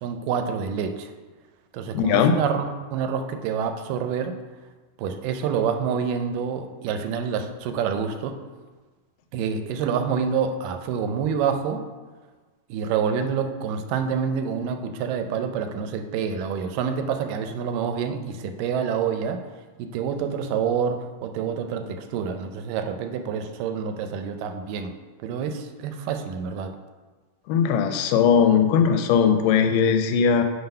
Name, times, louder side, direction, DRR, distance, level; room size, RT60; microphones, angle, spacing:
voice 1, 0.0-1.1 1.7-4.3 5.0-8.4 9.3-11.8 12.7-19.4 19.8-24.9 25.2-26.7, right 7 dB, 90° right, 7 dB, 2.3 m, -27 dB
voice 2, 1.9-2.4 27.5-30.4, left 7 dB, 85° left, 7 dB, 2.3 m, -19 dB
9.0 x 3.9 x 5.4 m, 1.3 s
omnidirectional pair, 3.8 m